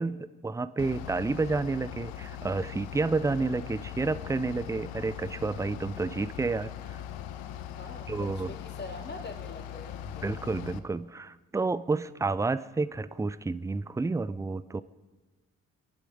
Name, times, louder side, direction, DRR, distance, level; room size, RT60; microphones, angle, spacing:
voice 1, 0.0-7.0 8.1-8.5 10.2-14.8, right 3 dB, 5° right, 17 dB, 0.5 m, -30 dB
Bus / Idling, 0.8-10.8, left 10 dB, 60° left, 0.9 m, -41 dB
voice 2, 7.8-10.3, left 2 dB, 25° left, 2 dB, 2.7 m, -44 dB
25.5 x 11.5 x 5.0 m, 1.3 s
figure-of-eight pair, 40°, 43 cm